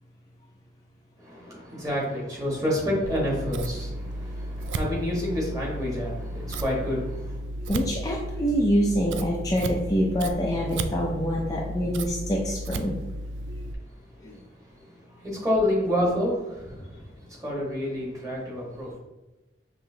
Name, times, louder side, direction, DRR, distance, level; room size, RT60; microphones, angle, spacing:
voice 1, 1.2-7.4 15.1-17.0 17.4-19.0, left 1 dB, 20° right, -5 dB, 1.4 m, -28 dB
Scissors, 3.0-13.7, right 1 dB, 75° right, 0.3 m, -34 dB
voice 2, 7.7-13.0 14.2-14.4, equal, 20° left, -2 dB, 0.4 m, -26 dB
5.5 x 3.0 x 2.8 m, 1.1 s
head